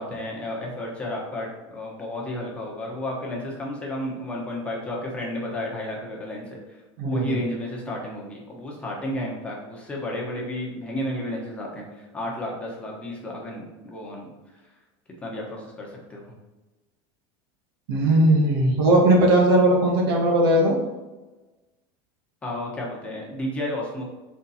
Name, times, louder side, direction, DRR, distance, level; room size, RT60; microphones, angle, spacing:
voice 1, 0.0-6.8 7.1-14.3 15.2-16.4 22.4-24.1, left 1 dB, 10° left, -3 dB, 1.1 m, -32 dB
voice 2, 7.0-7.4 17.9-20.8, right 1 dB, 85° right, 0 dB, 1.9 m, -18 dB
6.0 x 4.2 x 4.2 m, 1.2 s
cardioid pair, 175°, 12 cm